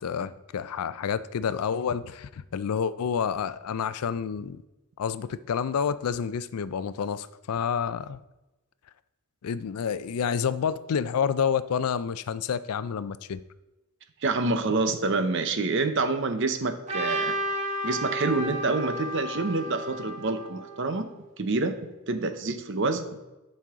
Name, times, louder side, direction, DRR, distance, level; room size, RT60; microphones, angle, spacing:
voice 1, 0.0-4.6 5.0-8.2 9.4-13.4, left 7 dB, 85° left, 15 dB, 0.4 m, -29 dB
voice 2, 14.2-17.4 17.8-21.1 21.4-21.8 22.1-23.0, right 3 dB, 55° right, 8 dB, 0.7 m, -27 dB
Trumpet, 16.9-21.0, right 1 dB, 30° right, 1.1 m, -32 dB
10.0 x 5.4 x 3.6 m, 1.0 s
head